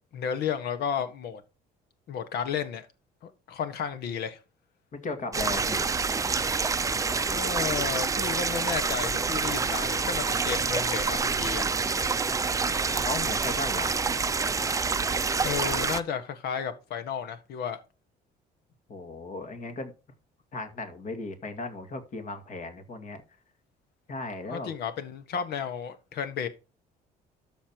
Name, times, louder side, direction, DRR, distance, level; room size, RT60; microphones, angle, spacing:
voice 1, 0.1-1.4 2.1-2.9 3.2-4.4 7.3-11.7 15.4-17.8 24.5-26.5, left 7 dB, 70° left, 1.5 m, -33 dB
voice 2, 4.9-5.8 12.9-13.9 18.9-19.9 20.5-23.2 24.1-24.7, left 3 dB, 50° left, 2.2 m, -36 dB
sound 1, 5.3-16.0, right 4 dB, 20° right, 0.6 m, -27 dB
13.0 x 5.5 x 3.0 m
cardioid pair, 110°, 17 cm